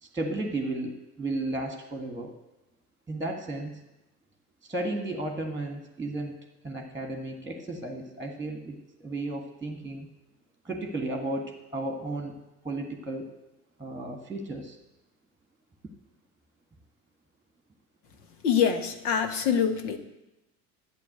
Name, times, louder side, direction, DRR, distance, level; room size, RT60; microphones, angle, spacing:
voice 1, 0.1-2.3 3.1-3.8 4.6-6.4 6.6-10.1 10.6-12.4 12.6-13.3 13.8-14.8, right 2 dB, 5° right, 3 dB, 1.6 m, -34 dB
voice 2, 18.4-20.0, left 7 dB, 70° left, 9 dB, 1.5 m, -25 dB
11.5 x 8.5 x 7.9 m, 0.98 s
figure-of-eight pair, 75°, 47 cm